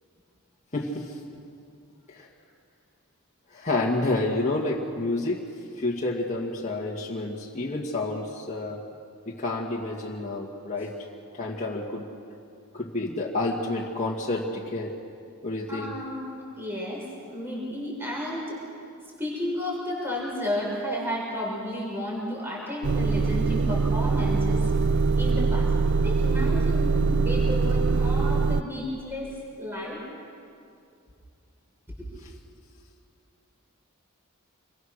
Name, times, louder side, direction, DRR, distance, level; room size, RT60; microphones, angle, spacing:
voice 1, 0.7-1.2 2.1-2.3 3.5-5.4 5.8-8.8 9.3-10.9 11.3-12.1 12.7-14.9 15.4-16.0, left 2 dB, 35° left, -3 dB, 2.0 m, -29 dB
voice 2, 15.7-18.6 19.2-24.7 25.2-25.7 26.0-30.0 32.0-32.1, left 1 dB, 10° right, -4 dB, 6.2 m, -32 dB
Motor vehicle (road) / Engine starting / Idling, 22.8-28.6, right 4 dB, 55° right, 0.5 m, -23 dB
27.0 x 22.5 x 6.6 m, 2.4 s
head